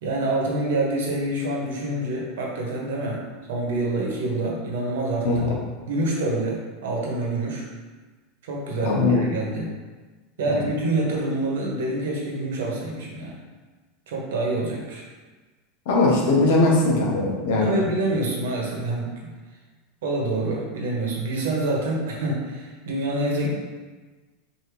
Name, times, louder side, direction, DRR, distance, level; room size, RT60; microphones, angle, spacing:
voice 1, 0.0-3.2 3.5-5.4 5.9-7.6 8.4-9.7 10.4-13.4 14.1-15.0 17.6-19.1 20.0-23.5, right 2 dB, 90° right, -2 dB, 1.2 m, -26 dB
voice 2, 8.8-9.2 10.5-10.6 15.9-17.8, left 2 dB, 60° left, -2 dB, 1.0 m, -20 dB
4.7 x 2.9 x 3.3 m, 1.3 s
supercardioid pair, 175°, 0 cm